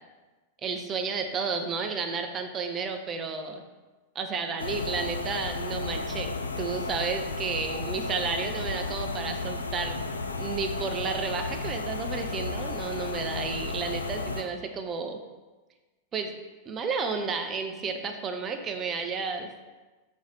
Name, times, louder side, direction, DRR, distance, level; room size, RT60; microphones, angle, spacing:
voice 1, 0.6-3.6 4.1-10.0 10.3-15.2 16.1-16.3 16.7-19.5, right 5 dB, 25° right, 5 dB, 0.7 m, -32 dB
sound 1, 4.6-14.4, left 3 dB, 80° left, 0.4 m, -33 dB
4.8 x 4.2 x 5.2 m, 1.2 s
figure-of-eight pair, 90°, 0 cm